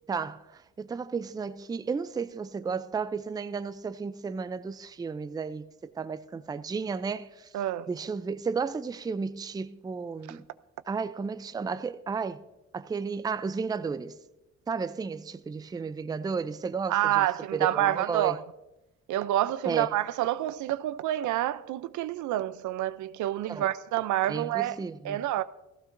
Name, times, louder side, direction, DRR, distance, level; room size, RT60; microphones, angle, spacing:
voice 1, 0.1-7.5 7.9-10.5 10.9-12.4 12.7-14.2 14.7-17.3 17.5-18.4 19.7-19.9 23.5-23.7 24.3-25.2, right 5 dB, 15° right, 0.4 m, -33 dB
voice 2, 7.5-7.9 10.3-10.4 16.9-18.4 19.1-24.8 25.0-25.4, right 13 dB, 75° right, 0.5 m, -28 dB
15.5 x 14.5 x 2.6 m
cardioid pair, 90°, 30 cm